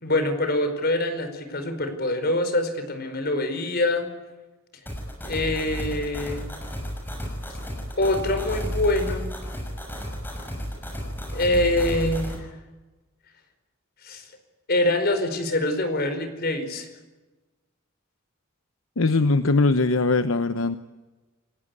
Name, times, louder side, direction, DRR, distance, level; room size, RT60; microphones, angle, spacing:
voice 1, 0.0-4.1 5.2-6.5 8.0-9.3 11.3-12.5 14.0-14.3 14.7-16.9, left 1 dB, 50° left, 8 dB, 4.8 m, -25 dB
sound 1, 4.9-12.4, equal, 10° left, 6.5 m, -32 dB
voice 2, 19.0-20.8, left 3 dB, 75° left, 11 dB, 0.9 m, -21 dB
29.0 x 17.0 x 9.7 m, 1.2 s
head